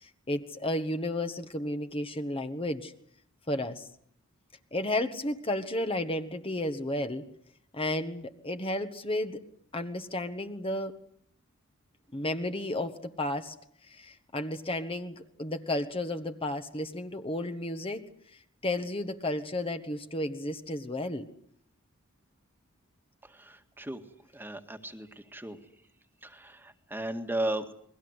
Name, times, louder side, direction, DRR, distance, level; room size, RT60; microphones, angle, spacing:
voice 1, 0.0-2.9 3.5-3.9 4.7-7.3 7.7-9.4 9.7-10.9 12.1-13.5 13.9-18.0 18.6-21.3, left 1 dB, 25° left, 7 dB, 1.5 m, -32 dB
voice 2, 23.4-24.0 24.3-25.6 26.2-27.7, right 1 dB, 10° right, 7 dB, 1.9 m, -35 dB
30.0 x 22.0 x 8.1 m, 0.66 s
head